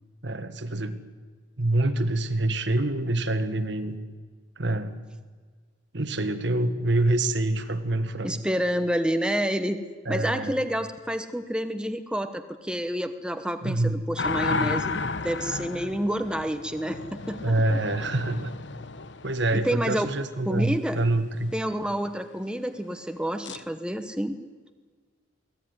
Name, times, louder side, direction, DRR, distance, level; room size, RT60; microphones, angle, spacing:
voice 1, 0.2-1.0 1.6-4.0 4.6-5.0 5.9-8.4 10.0-10.6 13.6-14.0 17.4-18.5 19.2-21.5, right 2 dB, 60° right, 10 dB, 1.5 m, -26 dB
voice 2, 8.2-9.8 10.1-15.0 15.2-17.8 19.5-20.1 20.5-21.0 21.5-24.4, equal, 5° right, 8 dB, 1.0 m, -29 dB
sound 1, 14.2-20.0 23.4-23.6, left 3 dB, 60° left, 1.0 m, -32 dB
24.0 x 17.0 x 9.6 m, 1.5 s
head